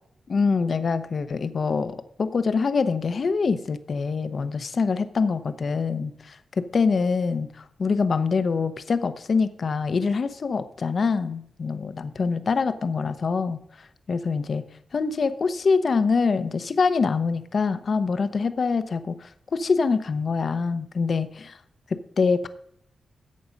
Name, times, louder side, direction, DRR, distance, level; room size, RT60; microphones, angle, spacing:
voice 1, 0.3-14.6 14.9-21.6 21.9-22.5, left 4 dB, 50° left, 11 dB, 0.9 m, -25 dB
14.0 x 8.5 x 5.3 m, 0.70 s
wide cardioid pair, 120°, 0 cm